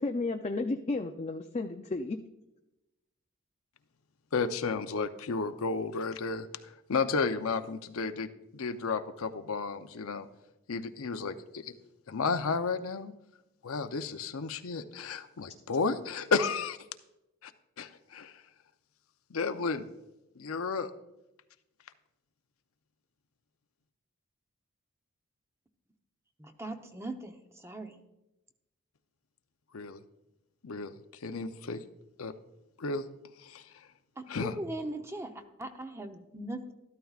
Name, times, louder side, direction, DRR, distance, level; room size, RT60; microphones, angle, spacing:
voice 1, 0.0-2.2, left 3 dB, 30° left, 4 dB, 0.4 m, -32 dB
voice 2, 4.3-10.3 10.7-11.7 12.1-13.1 13.6-16.8 17.4-17.5 17.8-18.3 19.3-19.9 20.4-20.9 29.7-30.0 30.6-30.9 31.2-31.8 32.2-32.3 32.8-33.1 33.4-33.6 34.3-34.5, left 4 dB, 80° left, 9 dB, 0.6 m, -32 dB
voice 3, 26.4-28.0 34.2-36.7, right 1 dB, 15° right, 6 dB, 0.7 m, -40 dB
13.0 x 12.5 x 2.4 m, 0.94 s
head